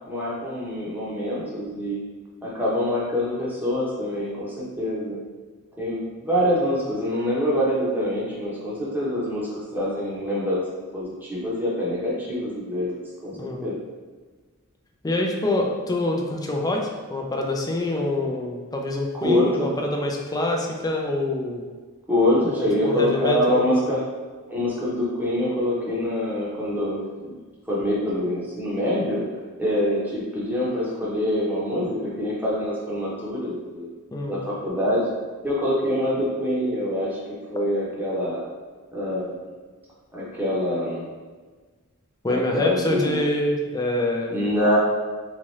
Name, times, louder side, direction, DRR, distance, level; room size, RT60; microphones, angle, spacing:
voice 1, 0.1-2.0 2.4-5.2 5.8-10.6 10.9-12.9 13.2-13.3 13.6-13.8 19.1-19.7 22.1-24.0 24.5-27.3 27.7-29.2 29.6-33.9 34.3-35.0 35.4-37.2 37.5-38.4 38.9-39.4 40.1-41.0 42.3-43.2 44.3-44.8, left 1 dB, 10° right, -7 dB, 0.9 m, -25 dB
voice 2, 13.4-13.7 15.0-16.8 17.1-21.6 22.5-23.7 34.1-34.4 42.2-44.4, left 1 dB, 15° left, 1 dB, 0.4 m, -26 dB
4.1 x 2.4 x 3.2 m, 1.4 s
head